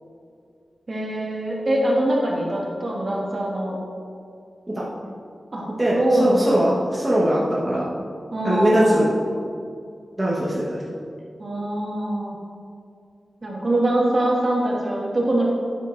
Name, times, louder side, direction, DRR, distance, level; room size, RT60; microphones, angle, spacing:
voice 1, 0.9-3.8 5.5-5.7 5.9-6.7 8.3-9.1 11.4-12.4 13.4-15.4, right 1 dB, 45° right, -4 dB, 2.0 m, -23 dB
voice 2, 5.8-7.9 8.4-9.0 10.2-10.8, right 1 dB, 15° right, -7 dB, 1.4 m, -21 dB
12.5 x 9.0 x 2.7 m, 2.3 s
wide cardioid pair, 135°, 0 cm